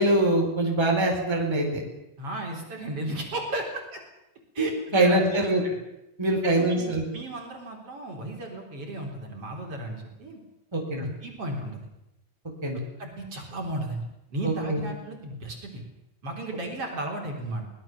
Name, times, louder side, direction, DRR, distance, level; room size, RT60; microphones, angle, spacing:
voice 1, 0.0-1.8 4.6-5.6 6.2-7.0 10.7-11.0 12.6-12.8 14.4-14.8, right 1 dB, 10° right, 1 dB, 4.0 m, -23 dB
voice 2, 2.2-4.0 4.5-4.7 5.0-5.7 6.4-10.4 11.0-11.9 13.0-14.0 14.3-15.8 16.2-17.6, right 1 dB, 45° right, 1 dB, 4.7 m, -35 dB
24.0 x 19.0 x 7.4 m, 0.88 s
omnidirectional pair, 3.7 m